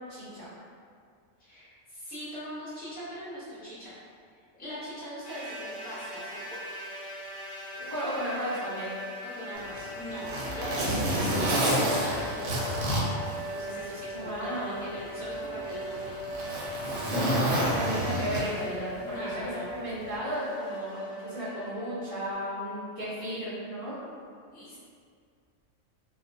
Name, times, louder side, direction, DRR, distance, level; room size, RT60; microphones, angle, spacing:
voice 1, 0.1-0.5 7.7-8.9 14.1-14.8 17.6-24.0, equal, 40° left, -14 dB, 0.5 m, -34 dB
voice 2, 1.4-3.9 4.3-5.6 5.8-6.6 9.3-12.9 13.5-16.1 19.0-19.7 24.5-24.8, equal, 10° left, -12 dB, 0.7 m, -41 dB
sound 1, 5.2-22.3, equal, 70° left, 0.9 m, -40 dB
Zipper (clothing), 9.6-14.0 14.4-14.5 15.3-18.8 19.9-20.1, right 1 dB, 70° right, 0.9 m, -29 dB
2.3 x 2.2 x 2.5 m, 2.2 s
omnidirectional pair, 1.4 m